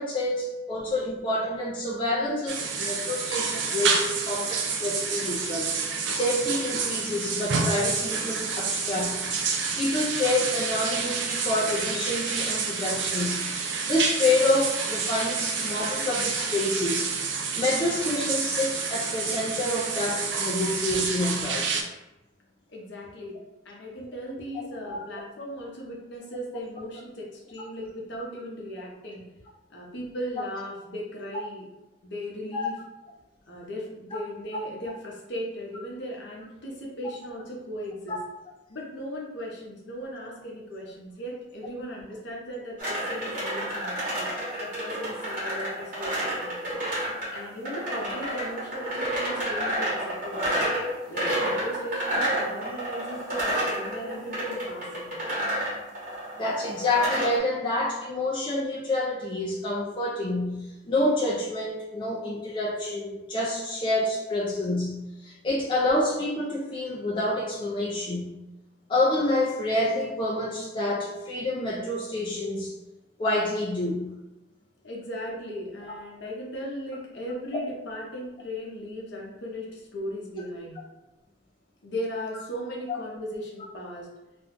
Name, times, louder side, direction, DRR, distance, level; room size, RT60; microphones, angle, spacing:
voice 1, 0.0-5.7 6.1-9.2 9.8-13.4 13.9-17.1 17.6-21.7 24.8-25.0 32.5-32.7 38.1-38.2 41.6-41.7 49.6-49.7 56.4-68.4 68.9-72.7 73.2-74.1 82.9-83.0, left 1 dB, 25° left, -5 dB, 0.3 m, -28 dB
sound 1, 2.5-21.8, right 5 dB, 65° right, 0.4 m, -29 dB
voice 2, 22.7-23.3 23.6-29.2 29.7-31.7 32.0-32.8 33.5-38.2 38.7-44.3 44.6-46.7 47.3-50.6 51.1-55.1 74.8-80.8 81.8-84.1, equal, 60° left, -2 dB, 0.7 m, -37 dB
sound 2, 42.8-57.4, right 1 dB, 40° right, 1.1 m, -30 dB
2.5 x 2.2 x 3.6 m, 0.99 s
head